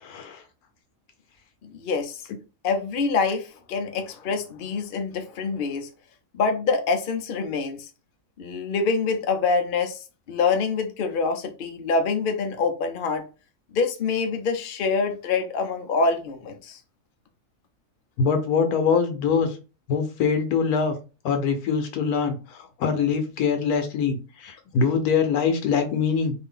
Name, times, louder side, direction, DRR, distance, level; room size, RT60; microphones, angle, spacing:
voice 1, 0.0-0.4 18.2-19.6 19.9-20.9 21.2-26.3, left 6 dB, 80° left, 1.2 m, -23 dB
voice 2, 1.6-2.2 2.6-5.9 6.3-7.9 8.4-13.2 13.7-16.8, left 4 dB, 60° left, 0.5 m, -25 dB
2.7 x 2.5 x 3.6 m
omnidirectional pair, 1.6 m